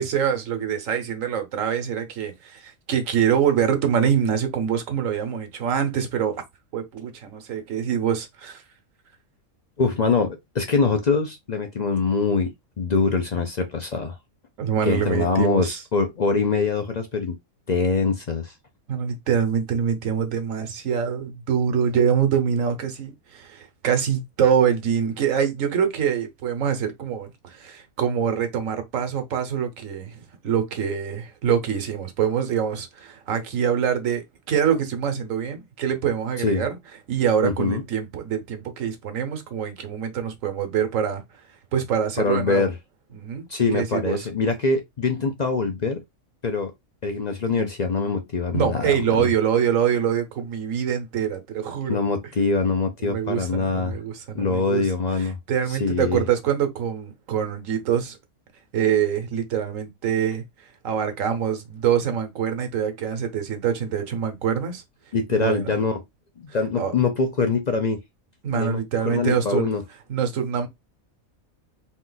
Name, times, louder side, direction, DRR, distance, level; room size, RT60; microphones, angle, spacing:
voice 1, 0.0-6.4 6.7-8.6 14.6-15.8 18.9-36.7 37.1-41.2 41.7-42.7 43.1-44.3 48.5-52.0 53.0-54.9 55.2-58.2 58.7-64.8 65.3-65.8 66.8-66.9 68.4-69.7 70.1-70.7, right 8 dB, 70° right, 1.3 m, -25 dB
voice 2, 9.8-14.2 14.9-17.3 17.7-18.5 36.4-36.6 37.4-37.8 42.2-42.7 43.5-46.0 46.4-46.7 47.0-49.3 51.9-54.0 54.3-55.4 55.7-56.2 65.1-66.0 66.4-68.0 68.5-69.8, left 4 dB, 50° left, 0.5 m, -24 dB
4.2 x 2.4 x 3.9 m
omnidirectional pair, 1.5 m